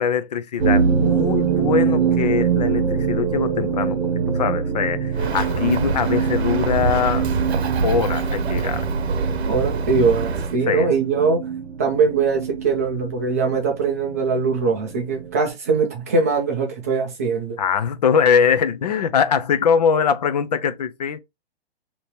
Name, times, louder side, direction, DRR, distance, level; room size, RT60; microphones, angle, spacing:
voice 1, 0.0-4.0 4.3-7.3 7.8-8.9 10.7-10.9 17.6-21.2, left 7 dB, 40° left, 0.5 m, -22 dB
sound 1, 0.6-15.5, right 7 dB, 45° right, 1.3 m, -24 dB
Bird, 5.1-10.6, right 4 dB, 80° right, 0.8 m, -25 dB
voice 2, 9.5-11.5 11.8-17.6, right 4 dB, 15° right, 0.4 m, -21 dB
3.2 x 2.9 x 4.3 m
hypercardioid pair, 165°, 32 cm